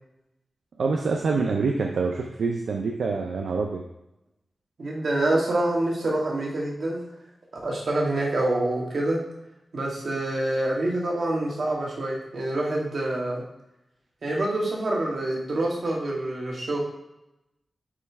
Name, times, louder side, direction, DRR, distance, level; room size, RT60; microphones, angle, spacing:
voice 1, 0.8-3.8, right 4 dB, 90° right, 1 dB, 0.5 m, -26 dB
voice 2, 4.8-7.0 7.6-9.2 9.7-13.4 14.2-16.9, right 1 dB, 70° right, -3 dB, 1.7 m, -26 dB
9.2 x 3.2 x 3.5 m, 0.91 s
cardioid pair, 65°, 0 cm